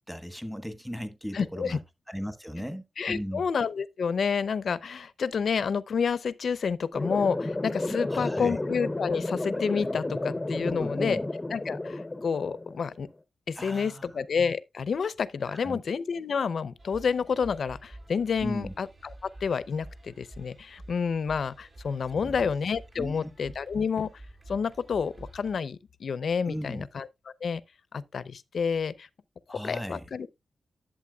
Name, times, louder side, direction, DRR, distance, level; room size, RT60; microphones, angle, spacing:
voice 1, 0.1-1.8 2.1-3.5 8.1-8.6 10.6-11.3 13.5-14.2 15.5-15.8 18.4-18.7 22.1-22.5 23.0-23.3 26.5-26.9 29.5-30.0, equal, ahead, 1.3 m, -37 dB
voice 2, 1.3-1.8 3.0-11.2 11.5-13.1 13.5-18.9 19.2-24.1 24.5-27.1 27.4-27.6 27.9-29.1 29.5-30.3, left 6 dB, 70° left, 0.6 m, -29 dB
sound 1, 6.9-12.9, left 2 dB, 20° left, 0.7 m, -32 dB
sound 2, 16.8-25.6, right 1 dB, 50° right, 4.8 m, -48 dB
11.5 x 7.5 x 2.3 m
cardioid pair, 80°, 0 cm